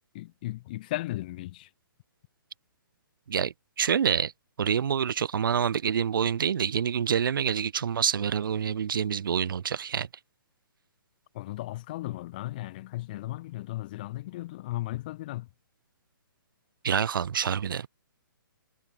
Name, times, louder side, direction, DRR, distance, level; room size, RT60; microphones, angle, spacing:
voice 1, 0.1-1.7 11.3-15.5, left 17 dB, 25° left, 0.6 m, -36 dB
voice 2, 3.3-4.3 4.6-10.1 16.8-17.9, right 8 dB, 70° right, 0.6 m, -27 dB
hypercardioid pair, 170°, 12 cm